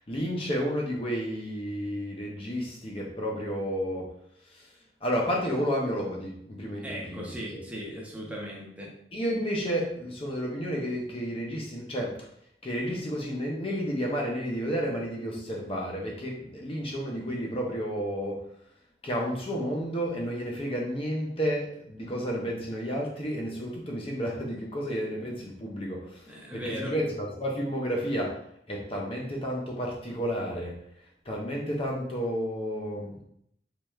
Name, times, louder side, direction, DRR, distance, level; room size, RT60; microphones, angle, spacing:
voice 1, 0.1-4.1 4.5-4.7 5.0-7.6 9.1-12.2 12.6-18.4 19.0-28.4 28.7-30.8 31.3-33.2, equal, 30° left, -2 dB, 0.6 m, -31 dB
voice 2, 6.8-8.9 26.3-26.9, equal, 10° right, -3 dB, 0.7 m, -38 dB
4.6 x 3.2 x 2.3 m, 0.71 s
head